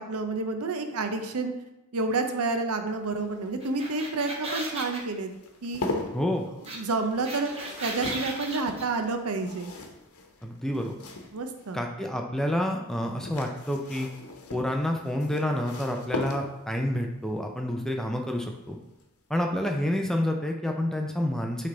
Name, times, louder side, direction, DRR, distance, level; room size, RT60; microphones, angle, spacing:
voice 1, 0.0-1.5 1.9-5.3 5.6-5.8 6.7-7.5 7.8-9.7 11.3-11.8, right 3 dB, 80° right, 7 dB, 0.7 m, -29 dB
sound 1, 2.9-11.8 12.9-16.8 18.4-18.7 19.0-19.1, left 2 dB, 85° left, 0.9 m, -39 dB
sound 2, 3.6-5.0 6.7-6.8 7.0-8.8, right 2 dB, 25° right, 0.9 m, -36 dB
voice 2, 10.4-11.0 11.7-14.1 14.5-18.8 19.3-21.7, left 1 dB, ahead, 2 dB, 0.4 m, -28 dB
8.6 x 3.4 x 3.8 m, 0.94 s
head